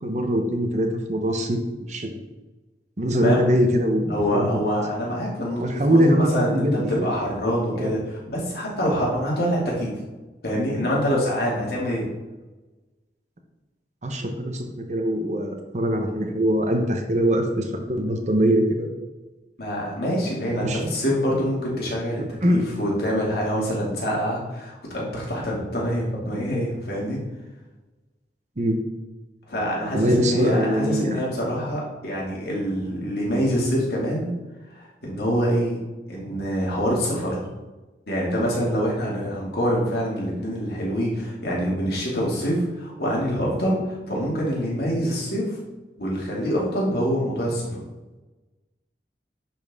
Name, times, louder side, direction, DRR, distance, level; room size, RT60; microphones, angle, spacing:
voice 1, 0.0-1.6 1.9-2.1 3.0-4.6 5.6-7.1 7.7-7.9 14.0-18.9 20.5-20.9 22.4-22.7 28.6-28.8 29.9-31.2, equal, 40° right, 4 dB, 0.9 m, -22 dB
voice 2, 4.1-6.7 7.0-9.9 10.4-12.0 19.6-22.2 22.5-27.2 29.5-34.3 34.8-35.8 36.1-37.5 38.1-45.6 46.0-47.8, equal, 60° left, -4 dB, 2.4 m, -25 dB
11.0 x 4.5 x 3.6 m, 1.2 s
head